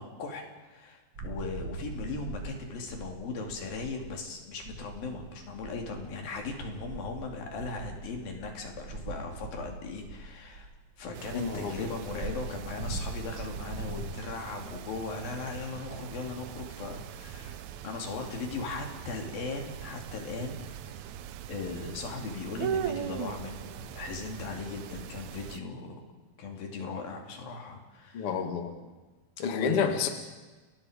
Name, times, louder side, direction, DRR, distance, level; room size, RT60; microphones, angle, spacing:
voice 1, 0.0-10.7 11.0-21.0 21.5-26.0 26.4-28.3 29.5-30.0, left 4 dB, 85° left, 2 dB, 4.7 m, -38 dB
sound 1, 1.1-4.3 4.5-14.1, right 3 dB, 40° right, 2.5 m, -42 dB
sound 2, 11.1-25.6, right 9 dB, 70° right, 1.9 m, -40 dB
voice 2, 11.3-11.9 28.1-28.7 29.4-30.1, left 7 dB, 45° left, 5 dB, 2.5 m, -29 dB
30.0 x 21.0 x 5.2 m, 1.3 s
omnidirectional pair, 4.0 m